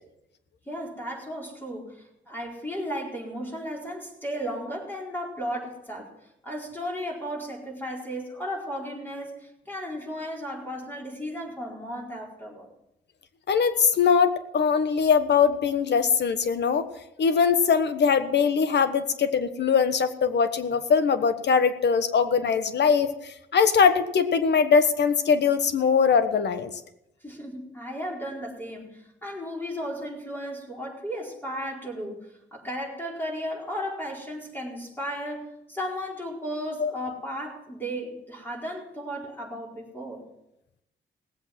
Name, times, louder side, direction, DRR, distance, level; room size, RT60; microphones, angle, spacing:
voice 1, 0.7-6.1 6.4-12.7 27.2-40.2, equal, 10° left, -3 dB, 4.6 m, -35 dB
voice 2, 13.5-16.9 17.2-26.7 36.8-36.9, left 6 dB, 60° left, 11 dB, 1.3 m, -22 dB
18.5 x 7.9 x 6.0 m, 0.84 s
cardioid pair, 75°, 19 cm